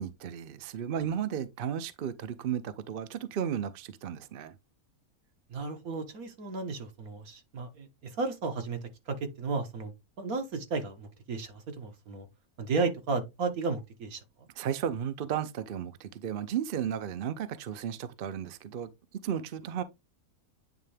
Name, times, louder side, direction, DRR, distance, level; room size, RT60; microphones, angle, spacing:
voice 1, 0.0-4.6 14.6-19.8, right 9 dB, 55° right, 0.6 m, -34 dB
voice 2, 5.5-8.8 9.1-12.3 12.6-14.2, right 4 dB, 75° right, 1.7 m, -34 dB
9.1 x 3.2 x 3.3 m
omnidirectional pair, 1.5 m